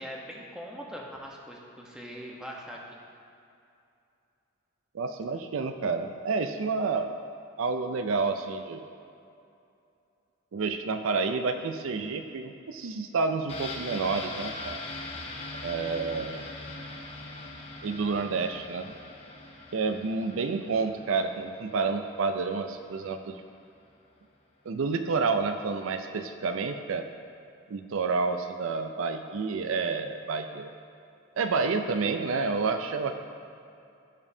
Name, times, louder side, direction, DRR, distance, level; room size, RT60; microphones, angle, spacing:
voice 1, 0.0-2.8, equal, 5° right, -3 dB, 0.9 m, -41 dB
voice 2, 4.9-7.2 7.6-8.9 10.5-14.8 15.6-16.5 17.8-18.9 19.7-23.4 24.7-27.1 27.7-30.7 31.4-33.1, right 4 dB, 70° right, 7 dB, 0.4 m, -29 dB
sound 1, 13.5-23.1 23.4-23.5, left 2 dB, 30° left, 1.0 m, -42 dB
15.5 x 5.3 x 2.7 m, 2.6 s
head